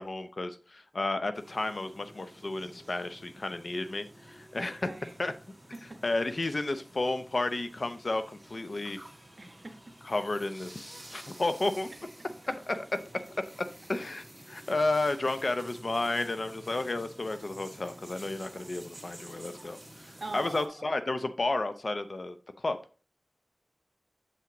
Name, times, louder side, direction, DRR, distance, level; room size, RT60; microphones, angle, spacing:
voice 1, 0.0-4.9 5.2-5.3 6.0-9.0 10.0-11.9 12.7-12.9 13.9-22.8, left 2 dB, 55° left, 0.6 m, -32 dB
sound 1, 1.3-20.6, equal, 5° right, 2.3 m, -53 dB
sound 2, 2.5-20.7, right 1 dB, 20° right, 1.9 m, -54 dB
voice 2, 4.6-5.1 5.7-6.0 9.4-9.9 13.1-13.2 20.2-20.9, right 2 dB, 55° right, 1.2 m, -43 dB
7.2 x 5.9 x 3.0 m
wide cardioid pair, 60°, 0 cm